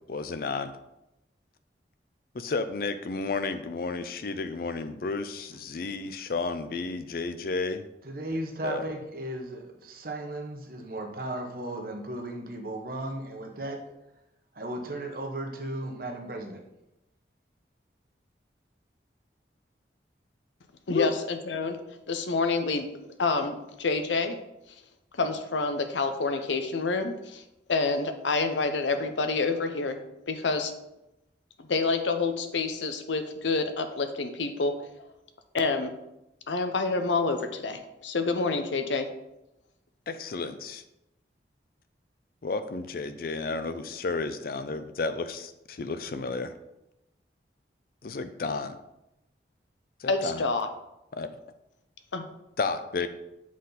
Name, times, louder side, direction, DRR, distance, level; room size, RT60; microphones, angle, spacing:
voice 1, 0.1-0.7 2.3-7.8 8.6-8.8 20.9-21.1 40.1-40.8 42.4-46.5 48.0-48.8 50.0-50.4 51.1-51.3 52.6-53.1, left 3 dB, 55° left, 11 dB, 0.4 m, -32 dB
voice 2, 8.0-13.8 14.5-16.6, right 1 dB, 50° right, 3 dB, 1.0 m, -35 dB
voice 3, 20.9-21.8 22.1-22.9 23.2-24.4 25.1-27.4 27.7-30.0 30.3-30.7 31.6-34.7 35.5-35.9 36.5-39.1 50.1-50.7 52.1-52.3, left 3 dB, 90° left, 8 dB, 0.7 m, -28 dB
7.4 x 4.1 x 3.9 m, 0.89 s
head